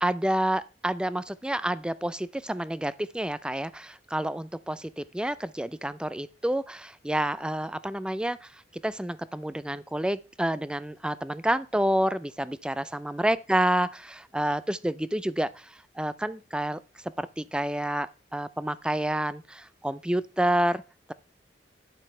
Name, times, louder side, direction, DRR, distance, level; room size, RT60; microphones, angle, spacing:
voice 1, 0.0-16.8 17.2-20.8, right 1 dB, 5° right, 0.4 m, -29 dB
12.0 x 9.4 x 3.3 m
head